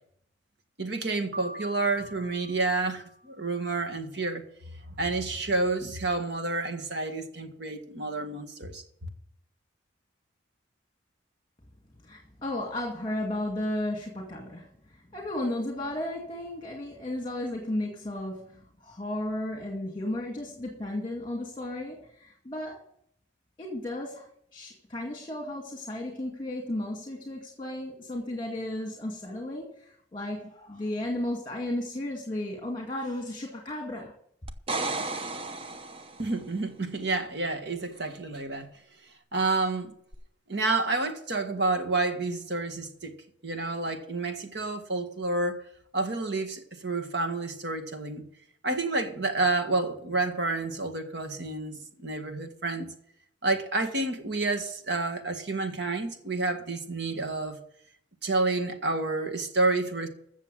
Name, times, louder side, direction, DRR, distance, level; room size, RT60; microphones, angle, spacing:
voice 1, 0.8-4.4 5.0-8.8 36.2-38.7 39.3-39.9 40.5-43.1 43.4-45.6 45.9-48.3 48.6-52.9 53.4-57.6 58.2-60.1, right 3 dB, 60° right, 1.8 m, -29 dB
Piano, 1.3-3.5, equal, 80° right, 1.9 m, -44 dB
voice 2, 12.0-22.8 23.6-34.1, left 1 dB, 25° left, 2.1 m, -34 dB
sound 1, 34.5-36.4 40.1-40.2, right 3 dB, 30° right, 0.8 m, -33 dB
15.0 x 6.9 x 6.4 m
head